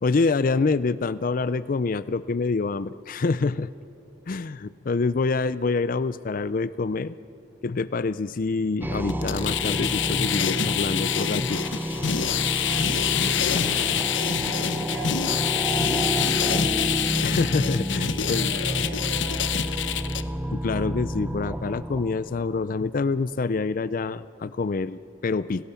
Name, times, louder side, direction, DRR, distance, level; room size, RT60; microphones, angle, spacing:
voice 1, 0.0-3.7 4.3-7.1 7.6-11.6 17.2-18.6 20.5-25.6, left 4 dB, 45° left, 16 dB, 0.4 m, -26 dB
sound 1, 8.8-22.9, right 1 dB, 10° right, 0.8 m, -30 dB
sound 2, 9.1-20.2, left 9 dB, 75° left, 0.9 m, -26 dB
voice 2, 12.6-13.4 14.3-17.0 18.0-20.2, right 1 dB, 85° right, 2 dB, 4.2 m, -40 dB
29.5 x 18.0 x 7.0 m, 2.9 s
head